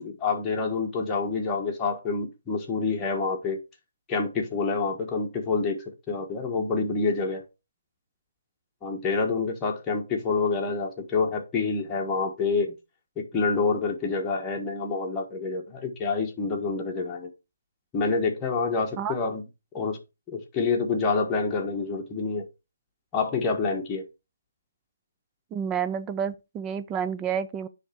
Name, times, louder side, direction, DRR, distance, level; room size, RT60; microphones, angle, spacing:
voice 1, 0.0-3.6 4.1-7.4 8.8-12.7 13.2-17.3 17.9-19.4 19.7-20.0 20.3-22.4 23.1-24.0, left 4 dB, 15° left, 1.4 m, -27 dB
voice 2, 25.5-27.7, right 8 dB, 15° right, 0.5 m, -29 dB
9.9 x 3.3 x 4.5 m
figure-of-eight pair, 150°, 0 cm